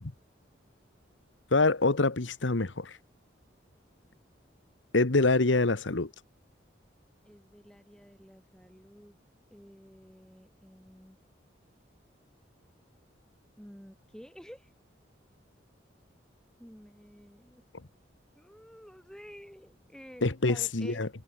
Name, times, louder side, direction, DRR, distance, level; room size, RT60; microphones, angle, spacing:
voice 1, 1.5-3.0 4.9-6.1 20.2-21.1, left 3 dB, 80° left, 1.3 m, -25 dB
voice 2, 7.2-9.1 9.5-11.2 13.6-14.7 16.6-17.6 18.3-21.0, equal, 5° left, 6.4 m, -51 dB
head